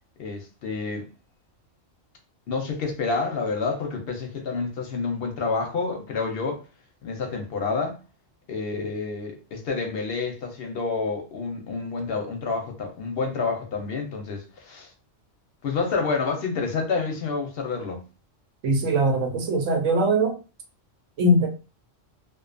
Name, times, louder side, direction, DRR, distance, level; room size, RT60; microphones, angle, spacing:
voice 1, 0.2-1.0 2.5-6.6 7.0-8.0 8.5-14.9 15.6-18.0, left 4 dB, 60° left, 0.7 m, -28 dB
voice 2, 18.6-20.4 21.2-21.5, right 1 dB, 85° right, 1.0 m, -21 dB
2.5 x 2.2 x 2.4 m
omnidirectional pair, 1.3 m